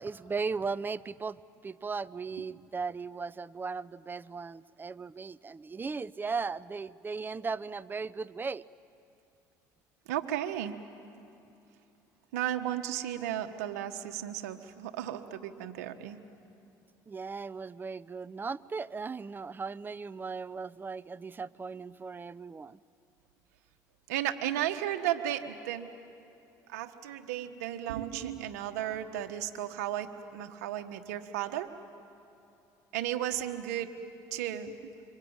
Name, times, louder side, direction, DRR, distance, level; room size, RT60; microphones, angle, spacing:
voice 1, 0.0-8.6 17.1-22.8, right 4 dB, 25° right, 18 dB, 0.6 m, -37 dB
voice 2, 10.1-10.8 12.3-16.2 24.1-25.9 26.7-31.7 32.9-33.9 34.3-34.9, right 12 dB, 90° right, 7 dB, 1.4 m, -34 dB
26.0 x 24.5 x 8.9 m, 2.8 s
supercardioid pair, 85°, 9 cm